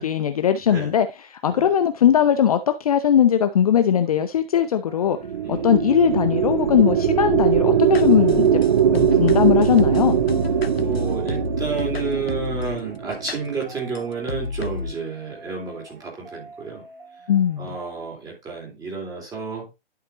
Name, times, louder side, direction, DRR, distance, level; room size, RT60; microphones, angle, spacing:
voice 1, 0.0-5.2 5.5-8.6 8.9-10.2 17.3-17.7, left 9 dB, 40° left, 0.6 m, -19 dB
sound 1, 4.9-18.1, right 1 dB, 60° right, 5.3 m, -46 dB
sound 2, 5.1-13.6, right 9 dB, 35° right, 0.6 m, -21 dB
voice 2, 5.4-5.8 10.8-16.8 17.6-19.7, right 4 dB, 10° right, 3.7 m, -31 dB
sound 3, 7.9-12.8 13.3-13.4 14.0-14.1 14.3-14.9, left 5 dB, 80° left, 0.8 m, -30 dB
11.0 x 5.9 x 2.9 m
figure-of-eight pair, 125°, 30 cm